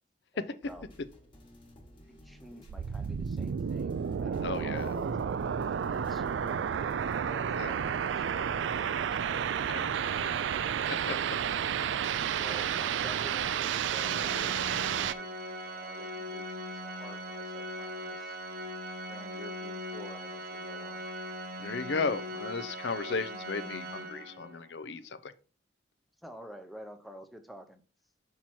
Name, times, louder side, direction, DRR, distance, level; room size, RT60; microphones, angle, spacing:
voice 1, 0.5-1.0 2.0-6.9 12.0-18.4 19.1-21.0 26.2-27.8, right 1 dB, ahead, 0.6 m, -50 dB
sound 1, 0.6-7.3, equal, 25° left, 1.4 m, -54 dB
sound 2, 2.7-15.1, right 8 dB, 80° right, 0.4 m, -31 dB
voice 2, 4.4-4.9 7.6-7.8 9.7-9.9 10.1-10.3 10.9-11.2 21.6-25.3, left 4 dB, 65° left, 0.5 m, -35 dB
Organ, 13.8-24.7, equal, 50° right, 0.9 m, -40 dB
5.9 x 4.5 x 4.3 m
head